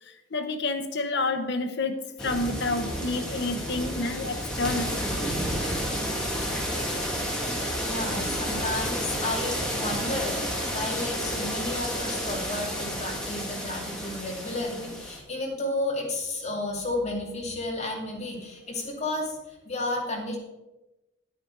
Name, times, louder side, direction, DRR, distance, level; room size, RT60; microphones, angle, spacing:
voice 1, 0.0-5.0, left 3 dB, 60° left, 7 dB, 1.0 m, -29 dB
sound 1, 2.2-15.2, equal, 5° left, 2.1 m, -31 dB
voice 2, 7.8-20.4, left 2 dB, 35° left, -2 dB, 2.6 m, -32 dB
10.5 x 9.2 x 4.7 m, 1.0 s
head